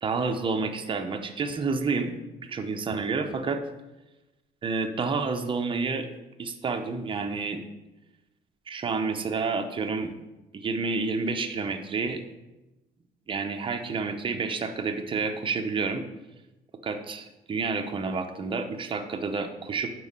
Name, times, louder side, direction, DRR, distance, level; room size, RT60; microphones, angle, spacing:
voice 1, 0.0-2.2 2.5-3.6 4.6-6.1 6.4-7.6 8.7-10.1 10.5-12.2 13.3-16.0 16.8-19.9, right 4 dB, 30° right, 6 dB, 0.7 m, -29 dB
6.0 x 4.6 x 5.4 m, 1.0 s
cardioid pair, 110°, 17 cm